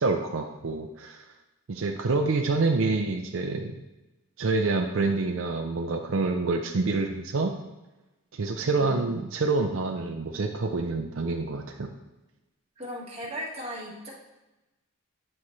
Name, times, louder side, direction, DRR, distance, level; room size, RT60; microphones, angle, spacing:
voice 1, 0.0-1.2 1.7-3.8 4.4-7.5 8.3-11.9, right 3 dB, 60° right, 3 dB, 0.5 m, -27 dB
voice 2, 12.8-14.1, equal, 25° right, -4 dB, 1.7 m, -37 dB
9.9 x 4.2 x 3.2 m, 1.0 s
head